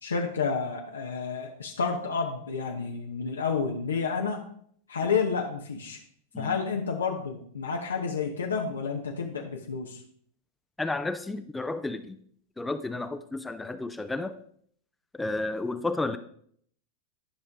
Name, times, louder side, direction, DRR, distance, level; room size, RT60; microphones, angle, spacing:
voice 1, 0.0-4.4 4.9-6.0 6.4-10.0, left 5 dB, 90° left, 1 dB, 0.9 m, -30 dB
voice 2, 10.8-12.2 12.6-14.3 15.1-16.2, left 2 dB, 10° left, 10 dB, 0.5 m, -32 dB
11.5 x 5.2 x 3.6 m, 0.62 s
hypercardioid pair, 105°, 0 cm